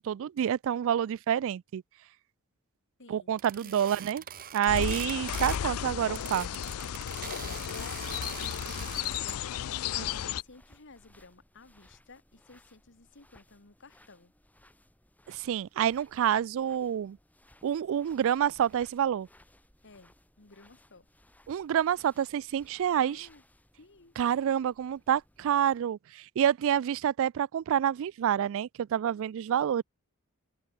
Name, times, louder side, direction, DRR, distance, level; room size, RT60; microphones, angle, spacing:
voice 1, 0.0-1.8 3.1-4.2 4.5-6.5 10.0-10.1 15.3-17.2 17.6-19.3 21.5-23.3 24.2-29.8, right 9 dB, 60° right, 0.3 m, -28 dB
voice 2, 3.0-3.3 3.6-4.2 4.8-5.2 7.3-14.3 19.8-21.1 23.1-23.4 23.8-24.1, left 3 dB, 55° left, 1.8 m, -53 dB
sound 1, 3.4-5.7 6.0-9.4, right 10 dB, 40° right, 0.9 m, -43 dB
sound 2, 4.7-10.4, left 9 dB, 75° left, 0.4 m, -34 dB
sound 3, 6.3-25.8, left 1 dB, 5° left, 3.6 m, -62 dB
open air
head